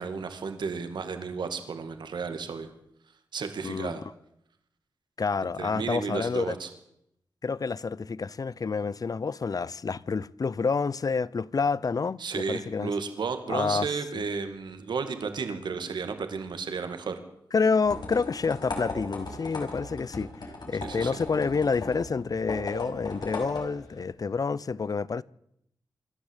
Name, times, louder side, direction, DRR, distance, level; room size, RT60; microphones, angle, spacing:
voice 1, 0.0-2.7 3.3-4.0 5.4-6.7 12.2-17.2 20.8-21.2, right 5 dB, 85° right, 2.4 m, -33 dB
voice 2, 5.2-6.5 7.4-12.9 13.5-13.9 17.5-20.3 20.7-25.2, left 5 dB, 55° left, 0.7 m, -28 dB
sound 1, 17.8-24.0, left 2 dB, 75° left, 5.8 m, -38 dB
26.5 x 12.0 x 8.2 m
cardioid pair, 50°, 8 cm